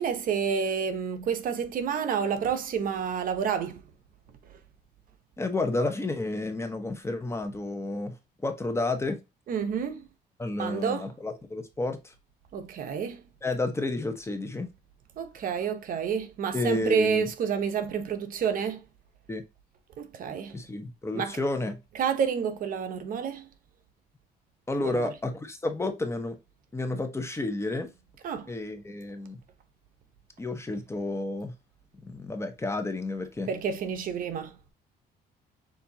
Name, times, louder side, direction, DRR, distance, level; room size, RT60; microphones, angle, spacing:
voice 1, 0.0-3.8 9.5-10.1 10.6-11.1 12.5-13.2 15.2-18.8 20.0-20.6 21.1-21.4 21.9-23.5 24.8-25.1 28.2-28.5 33.5-34.6, right 7 dB, 55° right, 0.9 m, -29 dB
voice 2, 5.4-8.2 8.4-9.2 10.4-12.1 13.4-14.7 16.5-17.3 19.3-19.4 20.5-21.8 24.7-26.4 26.7-27.9 28.5-29.4 30.4-31.5 32.0-33.5, left 2 dB, 15° left, 0.9 m, -31 dB
6.9 x 2.7 x 2.8 m
cardioid pair, 110°, 17 cm